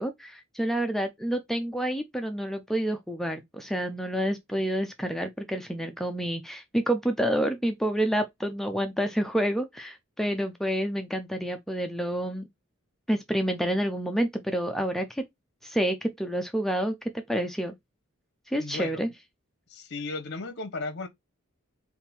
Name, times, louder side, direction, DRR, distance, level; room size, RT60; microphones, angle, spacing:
voice 1, 0.0-12.5 13.1-15.2 15.6-17.7 18.5-19.1, right 1 dB, ahead, 0.3 m, -28 dB
voice 2, 18.6-19.1 19.7-21.1, left 3 dB, 50° left, 0.9 m, -35 dB
3.6 x 2.4 x 4.2 m
head